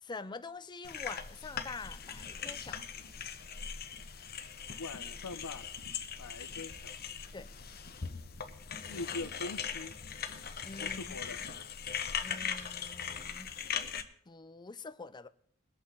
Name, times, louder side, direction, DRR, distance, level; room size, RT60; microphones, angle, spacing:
voice 1, 0.0-2.8 7.3-7.5 10.6-11.4 12.2-13.5 14.3-15.3, left 3 dB, 20° left, 0.5 m, -45 dB
sound 1, 0.8-14.0, left 7 dB, 45° left, 1.0 m, -40 dB
voice 2, 4.8-5.7 6.2-6.9 8.8-9.9 10.8-11.4, left 3 dB, 85° left, 0.7 m, -42 dB
22.5 x 8.5 x 3.8 m
head